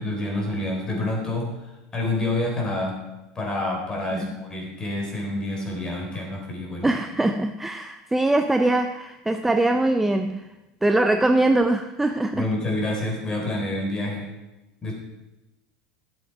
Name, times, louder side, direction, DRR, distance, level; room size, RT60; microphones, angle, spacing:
voice 1, 0.0-3.0 3.4-6.9 12.3-14.3 14.8-14.9, left 2 dB, 20° left, 0 dB, 3.8 m, -28 dB
voice 2, 6.8-10.5 10.8-12.5, right 2 dB, 5° right, 7 dB, 0.5 m, -22 dB
12.5 x 7.6 x 4.7 m, 1.0 s
supercardioid pair, 125°, 3 cm